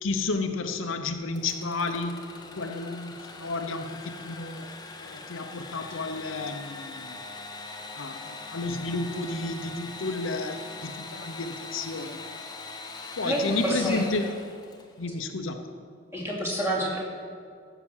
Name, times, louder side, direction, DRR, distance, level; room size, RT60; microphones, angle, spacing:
voice 1, 0.0-2.2 2.6-4.7 5.0-7.2 8.0-12.2 13.2-14.4 15.0-15.6, left 3 dB, 75° left, 6 dB, 0.8 m, -31 dB
Engine / Sawing, 1.3-15.0, left 3 dB, 20° left, 0.8 m, -42 dB
voice 2, 13.2-14.0 16.1-17.0, right 1 dB, 15° right, -5 dB, 2.8 m, -28 dB
14.5 x 5.9 x 7.2 m, 2.2 s
head